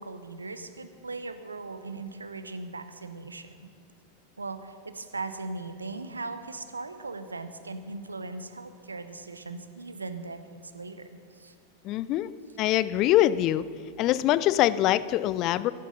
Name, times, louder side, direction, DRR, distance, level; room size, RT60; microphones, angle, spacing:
voice 1, 0.0-3.5 4.4-11.5, right 3 dB, 80° right, 11 dB, 0.8 m, -39 dB
voice 2, 11.8-12.3 12.6-13.6 14.0-15.7, left 14 dB, 40° left, 17 dB, 0.4 m, -23 dB
13.0 x 12.0 x 5.5 m, 2.6 s
figure-of-eight pair, 90°, 0 cm